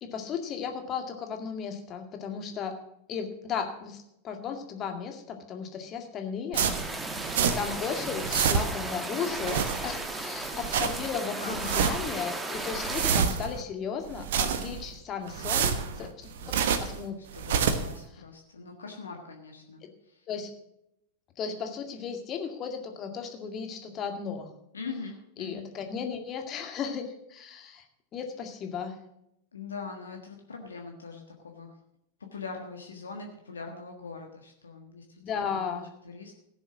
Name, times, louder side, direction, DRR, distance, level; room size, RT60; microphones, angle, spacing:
voice 1, 0.0-2.8 3.1-6.7 7.6-16.5 16.8-17.2 17.6-17.8 19.8-19.9 20.3-20.5 21.4-24.5 25.4-27.8 28.1-29.0 35.2-35.9, left 6 dB, 30° left, 5 dB, 2.0 m, -35 dB
sound 1, 6.5-7.8 8.1-8.9 9.3-10.1 10.5-11.1 11.5-12.2 12.6-13.6 14.1-14.9 15.3-17.0 17.3-18.0, right 7 dB, 55° right, 1.1 m, -28 dB
sound 2, 6.6-13.2, right 2 dB, 10° right, 1.4 m, -35 dB
voice 2, 11.4-11.9 17.3-17.5 17.8-19.8 20.1-20.2 24.7-25.7 29.5-31.7 32.3-35.0 35.3-35.8 36.0-36.4, left 4 dB, 70° left, 2 dB, 1.5 m, -41 dB
16.5 x 7.1 x 6.1 m, 0.79 s
figure-of-eight pair, 90°, 0 cm